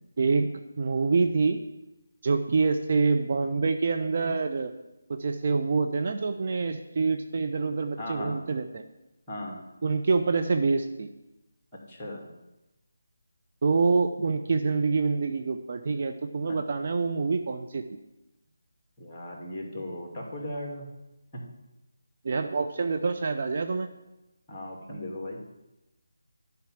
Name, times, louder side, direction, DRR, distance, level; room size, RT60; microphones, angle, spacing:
voice 1, 0.2-0.5 0.8-1.6 2.2-4.7 5.1-8.8 9.8-11.1 13.6-18.0 22.2-23.9, right 4 dB, 40° right, 5 dB, 0.6 m, -26 dB
voice 2, 8.0-8.4 9.3-9.6 11.9-12.3 16.5-16.6 19.0-20.9 21.3-21.4 24.5-25.4, left 1 dB, 15° left, -1 dB, 2.4 m, -37 dB
11.5 x 5.8 x 7.3 m, 0.96 s
figure-of-eight pair, 155°, 0 cm